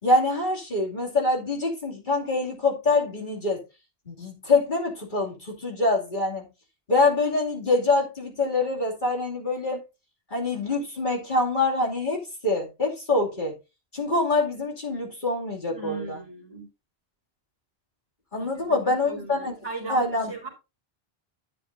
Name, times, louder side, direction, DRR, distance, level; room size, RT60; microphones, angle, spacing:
voice 1, 0.0-3.6 4.1-6.4 6.9-9.8 10.3-13.5 13.9-16.2 18.3-19.5 19.9-20.3, left 2 dB, 45° left, 2.8 m, -25 dB
voice 2, 15.7-16.7 18.4-20.5, right 3 dB, 20° right, 3.0 m, -38 dB
11.0 x 9.1 x 2.6 m
omnidirectional pair, 1.1 m